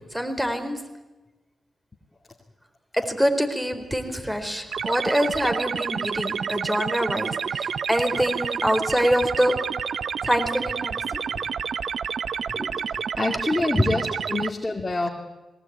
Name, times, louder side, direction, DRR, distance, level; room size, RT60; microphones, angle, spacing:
voice 1, 0.1-0.8 2.9-9.6 9.9-11.2 12.5-12.7 13.6-13.9, equal, 5° right, 7 dB, 4.1 m, -25 dB
sound 1, 4.7-14.5, right 6 dB, 65° right, 0.7 m, -29 dB
voice 2, 13.2-15.1, left 2 dB, 30° left, 1 dB, 2.6 m, -26 dB
20.0 x 18.5 x 9.5 m, 1.1 s
supercardioid pair, 40°, 0 cm